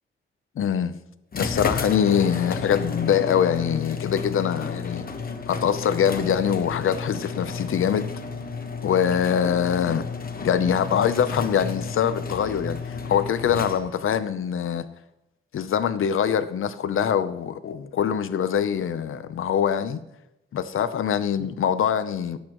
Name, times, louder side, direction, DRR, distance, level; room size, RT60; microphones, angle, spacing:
voice 1, 0.6-0.9 1.3-5.1 5.5-8.1 8.8-10.1 10.4-14.9 15.5-20.0 20.5-22.4, left 8 dB, 90° left, 0.7 m, -23 dB
sound 1, 1.3-14.1, left 5 dB, 45° left, 1.3 m, -32 dB
17.5 x 8.5 x 3.1 m
cardioid pair, 95°, 21 cm